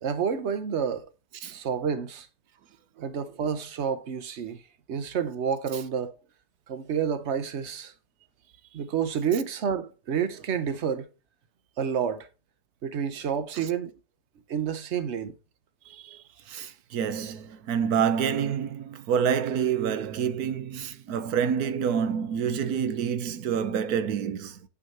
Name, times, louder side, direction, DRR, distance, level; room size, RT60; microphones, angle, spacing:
voice 1, 0.0-1.0 1.5-2.3 3.0-4.6 4.9-6.2 6.7-7.9 8.7-11.1 11.8-12.3 12.8-13.9 14.5-15.3, right 7 dB, 50° right, 1.1 m, -29 dB
voice 2, 15.9-24.6, right 7 dB, 75° right, 1.3 m, -28 dB
8.4 x 6.2 x 4.3 m
omnidirectional pair, 1.6 m